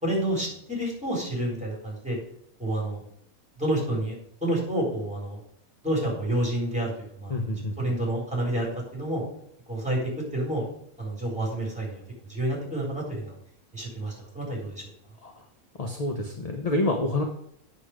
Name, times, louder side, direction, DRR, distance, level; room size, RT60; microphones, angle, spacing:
voice 1, 0.0-2.2 2.6-3.0 3.6-5.4 5.8-6.9 7.2-9.2 9.7-10.7 11.0-12.0 12.3-13.3 13.7-14.8, right 1 dB, 5° right, -3 dB, 3.9 m, -29 dB
voice 2, 7.3-7.8 15.2-15.4 15.8-17.2, left 2 dB, 30° left, 3 dB, 0.9 m, -28 dB
8.5 x 6.3 x 4.9 m, 0.72 s
omnidirectional pair, 1.5 m